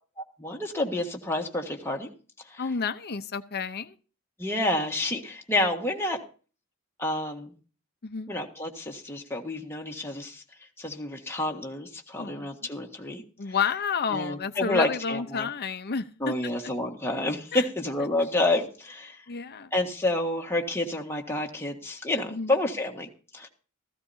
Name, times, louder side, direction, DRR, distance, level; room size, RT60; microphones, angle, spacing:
voice 1, 0.4-2.1 2.5-2.6 4.4-6.2 7.0-7.5 8.3-10.4 10.8-13.2 14.1-15.5 16.2-19.2 19.7-23.5, left 1 dB, 10° left, 0 dB, 1.6 m, -29 dB
voice 2, 2.6-3.9 8.0-8.3 12.2-12.5 13.4-16.3 17.5-17.6 19.3-19.7 22.3-22.5, left 5 dB, 50° left, 10 dB, 0.7 m, -30 dB
16.0 x 15.0 x 2.7 m, 0.37 s
head